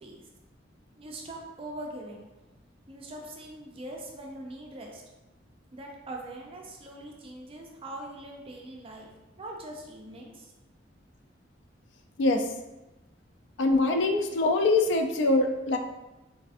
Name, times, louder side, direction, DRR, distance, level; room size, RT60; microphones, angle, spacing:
voice 1, 1.0-2.3 2.9-5.0 5.7-9.1 9.4-10.5, right 1 dB, 30° right, 0 dB, 0.4 m, -42 dB
voice 2, 12.2-12.5 13.6-15.8, left 2 dB, 70° left, 5 dB, 0.3 m, -23 dB
3.4 x 2.4 x 2.4 m, 1.0 s
head